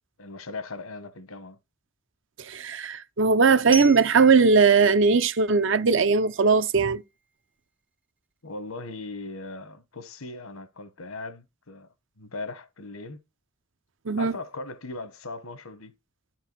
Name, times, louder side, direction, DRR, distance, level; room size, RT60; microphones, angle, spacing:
voice 1, 0.2-1.6 8.4-11.9 12.2-13.2 14.1-15.9, left 3 dB, 80° left, 1.3 m, -38 dB
voice 2, 2.4-7.0 14.1-14.3, right 4 dB, 60° right, 0.6 m, -19 dB
Glockenspiel, 3.7-6.6, right 2 dB, 5° right, 0.5 m, -39 dB
11.5 x 4.6 x 4.5 m
head